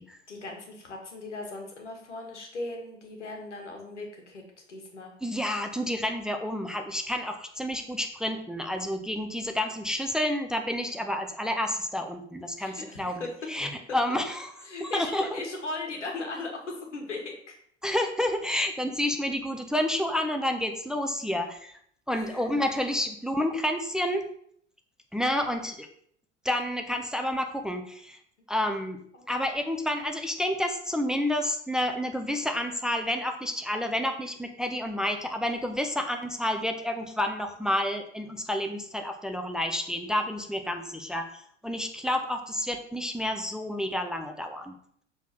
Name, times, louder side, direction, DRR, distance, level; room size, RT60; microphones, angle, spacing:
voice 1, 0.3-4.4 4.7-5.1 12.6-13.3 14.6-17.6 22.1-22.5 25.4-25.5 29.1-29.3, left 3 dB, 80° left, 2 dB, 1.8 m, -38 dB
voice 2, 5.2-13.2 13.5-14.5 14.8-15.4 17.8-21.8 22.1-24.3 25.1-25.7 26.4-28.2 28.5-29.0 29.3-44.7, left 1 dB, ahead, 5 dB, 0.8 m, -29 dB
7.1 x 4.0 x 6.0 m, 0.65 s
figure-of-eight pair, 75°, 35 cm